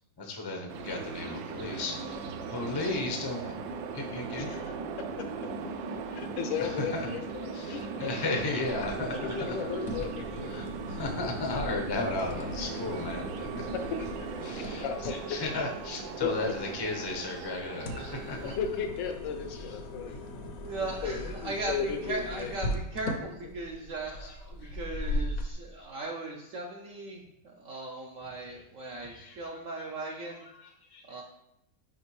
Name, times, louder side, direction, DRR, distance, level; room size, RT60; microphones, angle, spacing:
voice 1, 0.2-3.5 3.9-4.5 6.6-7.1 7.5-9.5 10.5-13.5 14.4-18.5 19.5-19.6 22.4-22.5 24.2-24.3 24.6-24.7 28.9-29.9 30.4-31.2, left 2 dB, 35° left, 1 dB, 0.4 m, -35 dB
sound 1, 0.7-18.6, right 4 dB, 85° right, 1.3 m, -38 dB
voice 2, 4.4-4.8 6.1-7.8 9.2-10.5 13.4-13.5 13.7-14.1 14.6-15.4 16.2-16.3 18.6-20.2 21.0-22.6, left 6 dB, 80° left, 6 dB, 1.4 m, -35 dB
sound 2, 8.7-25.5, left 1 dB, 65° left, 1.0 m, -39 dB
voice 3, 20.7-27.2 27.6-30.4 31.1-31.2, right 2 dB, 65° right, 0 dB, 0.8 m, -38 dB
6.2 x 5.2 x 3.1 m, 0.80 s
omnidirectional pair, 2.0 m